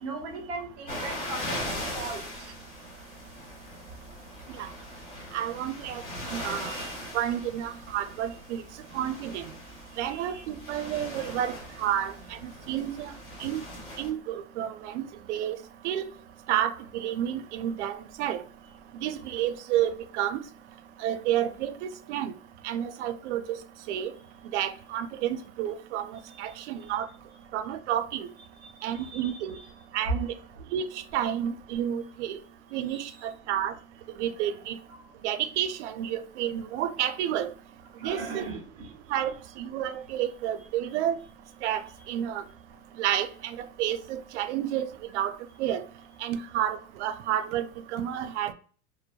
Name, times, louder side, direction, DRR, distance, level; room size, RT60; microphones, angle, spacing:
voice 1, 0.0-2.2 6.6-6.9 10.0-10.4 10.9-11.3 28.6-29.4 32.9-33.1 38.0-38.9, right 3 dB, 10° right, 0.4 m, -39 dB
sound 1, 0.9-14.1, left 1 dB, 45° left, 1.4 m, -40 dB
voice 2, 5.3-6.0 6.3-6.7 7.1-8.6 8.9-9.4 10.0-12.1 12.4-13.1 13.4-13.6 14.0-15.0 15.3-15.6 15.8-16.0 16.5-18.4 18.9-20.4 21.0-22.3 22.6-23.4 23.9-24.1 24.5-27.1 27.5-28.3 28.8-29.6 29.9-30.3 30.7-32.4 32.7-33.1 33.5-33.7 34.2-34.8 35.2-37.5 38.0-38.4 39.1-41.2 41.6-41.8 42.1-42.4 43.0-44.9 45.1-45.8 46.2-48.5, right 10 dB, 85° right, 0.5 m, -30 dB
2.7 x 2.0 x 2.2 m
supercardioid pair, 180°, 34 cm